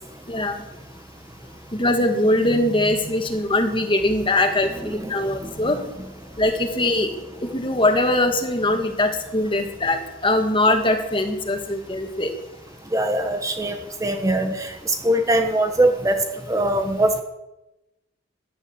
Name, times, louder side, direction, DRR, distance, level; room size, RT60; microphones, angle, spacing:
voice 1, 0.3-0.6 1.7-5.8 6.4-7.1 7.4-12.3, left 1 dB, 25° left, 5 dB, 2.0 m, -21 dB
voice 2, 4.8-5.1 12.9-16.2 16.5-17.2, right 1 dB, 20° right, 6 dB, 1.0 m, -22 dB
16.0 x 11.0 x 7.3 m, 0.97 s
head